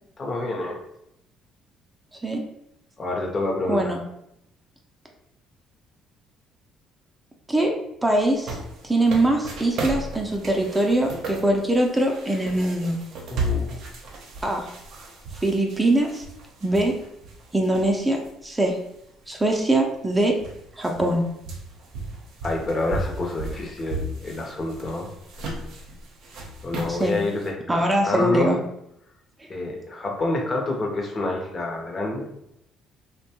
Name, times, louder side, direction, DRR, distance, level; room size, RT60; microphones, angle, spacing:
voice 1, 0.2-0.8 3.0-3.9 13.3-13.8 22.4-25.1 26.6-27.8 28.0-28.5 29.5-32.3, left 2 dB, 40° left, 0 dB, 0.8 m, -27 dB
voice 2, 3.7-4.0 7.5-7.7 8.0-8.6 8.8-13.0 14.4-14.7 15.4-16.2 16.6-17.0 17.5-18.8 19.3-20.4 20.8-21.3 26.9-27.2 27.7-28.6, right 1 dB, 15° right, 1 dB, 0.5 m, -22 dB
sound 1, 8.2-18.3 18.7-18.8 19.7-19.8 20.0-27.5, right 1 dB, 70° right, 0.6 m, -35 dB
2.6 x 2.2 x 2.8 m, 0.79 s
supercardioid pair, 75°, 0 cm